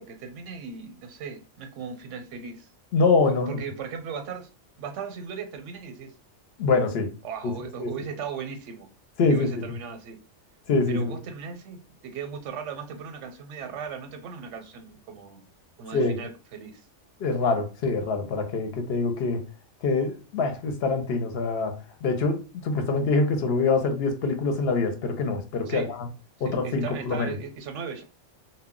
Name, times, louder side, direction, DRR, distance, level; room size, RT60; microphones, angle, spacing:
voice 1, 0.0-2.7 3.3-4.5 4.8-6.1 7.2-8.9 9.3-10.2 10.9-15.5 15.8-16.8 25.7-25.9 26.5-28.0, right 6 dB, 85° right, 0.9 m, -37 dB
voice 2, 2.9-3.6 6.6-7.1 7.8-7.9 9.2-9.6 10.7-11.2 15.9-16.2 17.2-19.4 19.8-25.9 26.4-27.3, left 3 dB, 65° left, 0.8 m, -25 dB
2.2 x 2.1 x 3.6 m
omnidirectional pair, 1.2 m